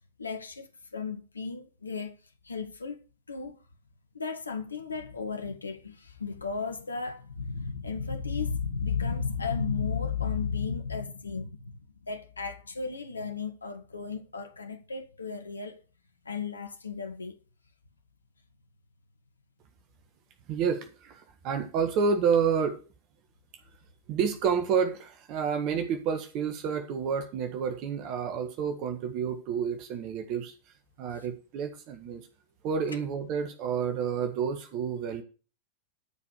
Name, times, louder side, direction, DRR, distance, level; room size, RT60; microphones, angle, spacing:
voice 1, 0.2-2.1 2.4-3.0 3.3-3.6 4.1-15.8 16.2-17.4, left 5 dB, 75° left, 1.5 m, -34 dB
voice 2, 20.5-22.8 24.1-30.5 31.0-32.3 32.6-35.2, right 6 dB, 40° right, 1.5 m, -29 dB
13.0 x 5.1 x 6.5 m
figure-of-eight pair, 90°, 0 cm